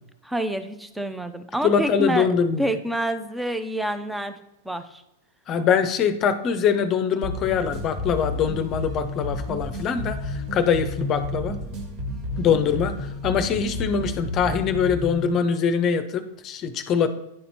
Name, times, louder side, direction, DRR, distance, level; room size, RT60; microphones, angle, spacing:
voice 1, 0.2-2.3 2.6-4.4 4.6-5.0, right 1 dB, 5° right, 9 dB, 0.7 m, -27 dB
voice 2, 1.6-2.8 5.5-11.6 12.4-17.1, left 7 dB, 35° left, 11 dB, 0.7 m, -23 dB
sound 1, 7.2-15.3, left 1 dB, 50° right, 1.7 m, -31 dB
10.0 x 4.3 x 4.2 m, 0.89 s
hypercardioid pair, 95°, 0 cm